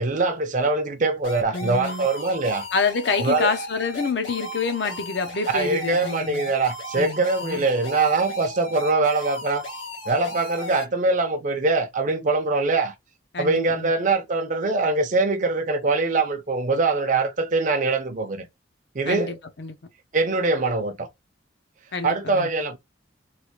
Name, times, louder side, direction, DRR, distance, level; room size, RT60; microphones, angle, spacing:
voice 1, 0.0-2.7 3.2-3.5 5.5-9.6 10.1-12.9 13.4-18.5 18.9-19.3 20.1-21.1 22.0-22.8, right 3 dB, 45° right, 0.6 m, -23 dB
sound 1, 1.2-10.8, left 1 dB, 85° left, 1.6 m, -35 dB
voice 2, 1.5-2.1 2.7-6.5 7.0-7.6 13.3-13.9 19.1-19.8 21.9-22.5, left 4 dB, 65° left, 0.7 m, -27 dB
3.2 x 2.4 x 2.9 m
head